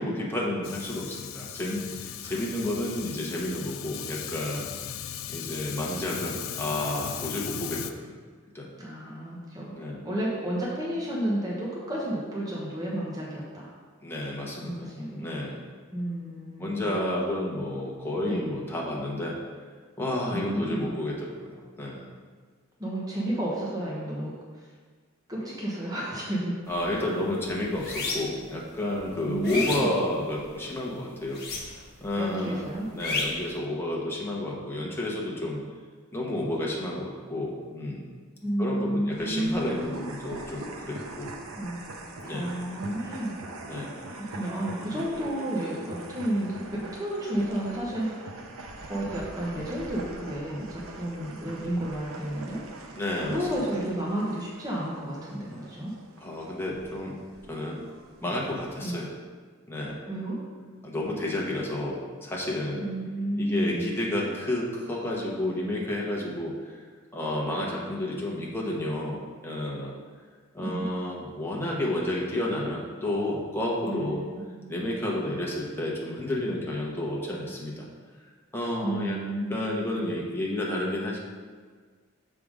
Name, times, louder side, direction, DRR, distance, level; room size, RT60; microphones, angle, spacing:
voice 1, 0.0-4.8 5.3-8.2 8.5-8.7 9.8-10.0 14.0-14.9 15.2-15.6 16.6-19.4 20.0-22.0 26.7-31.4 32.0-32.7 32.9-35.6 36.1-38.1 38.6-41.3 42.2-42.5 43.7-44.0 44.9-45.0 52.9-53.5 56.2-57.2 57.5-57.8 58.2-59.1 59.7-60.0 60.8-62.8 63.4-66.8 67.1-69.9 70.5-74.2 74.7-77.9 78.5-79.2 79.5-81.2, left 1 dB, 10° left, -3 dB, 1.1 m, -31 dB
Fire, 0.6-7.9, left 10 dB, 70° left, 0.4 m, -37 dB
voice 2, 8.8-9.7 10.0-13.7 14.6-15.3 15.9-16.9 18.2-18.4 20.3-20.9 22.8-24.3 25.3-26.6 26.9-27.0 29.2-29.9 32.2-32.9 38.4-40.1 41.6-41.8 42.3-43.3 44.1-48.3 48.8-52.9 53.2-55.9 58.2-58.3 58.8-59.0 60.1-60.4 62.8-63.9 70.6-70.8 73.9-74.4 78.8-79.5, right 1 dB, 20° right, -5 dB, 1.1 m, -31 dB
sound 1, 26.7-27.0 27.3-28.5 28.9-30.6 31.3-32.0 32.3-33.5, left 3 dB, 50° left, 1.2 m, -32 dB
sound 2, 39.1-58.8, right 2 dB, 85° right, 0.7 m, -43 dB
6.9 x 3.7 x 4.9 m, 1.6 s
head